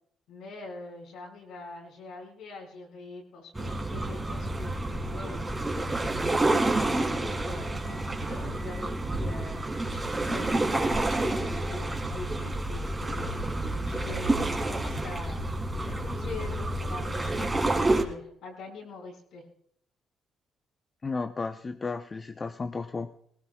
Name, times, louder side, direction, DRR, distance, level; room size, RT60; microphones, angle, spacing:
voice 1, 0.3-5.9 7.0-13.3 13.8-15.4 15.8-19.4, left 3 dB, 80° left, -1 dB, 5.2 m, -44 dB
sound 1, 3.6-18.0, right 2 dB, 20° right, 2.7 m, -29 dB
voice 2, 21.0-23.2, left 4 dB, 30° left, 8 dB, 0.6 m, -34 dB
20.0 x 19.0 x 2.3 m, 0.66 s
cardioid pair, 90°, 0 cm